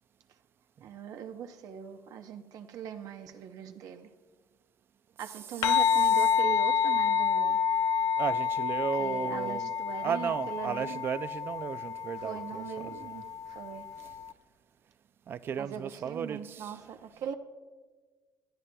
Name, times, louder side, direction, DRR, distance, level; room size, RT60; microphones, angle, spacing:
voice 1, 0.8-4.1 5.2-7.6 9.0-11.0 12.2-13.9 15.6-17.3, right 8 dB, 60° right, 0.7 m, -41 dB
sound 1, 5.6-14.3, left 7 dB, 50° left, 0.6 m, -29 dB
voice 2, 8.2-9.7 10.0-13.2 15.3-16.8, right 7 dB, 35° right, 0.3 m, -34 dB
25.0 x 12.5 x 2.2 m
cardioid pair, 180°, 7 cm